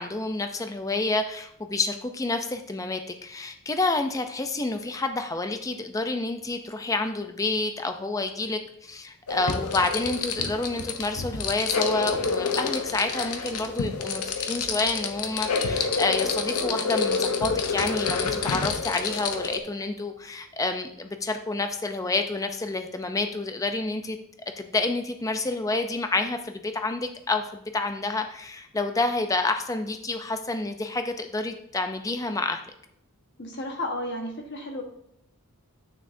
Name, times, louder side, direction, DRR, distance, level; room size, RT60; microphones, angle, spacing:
voice 1, 0.0-24.2 24.6-32.6, left 2 dB, 15° left, 6 dB, 0.4 m, -29 dB
sound 1, 9.3-19.6, left 5 dB, 80° left, 0.7 m, -28 dB
voice 2, 33.4-34.8, left 1 dB, 50° left, 3 dB, 1.2 m, -32 dB
9.0 x 6.2 x 2.6 m, 0.76 s
head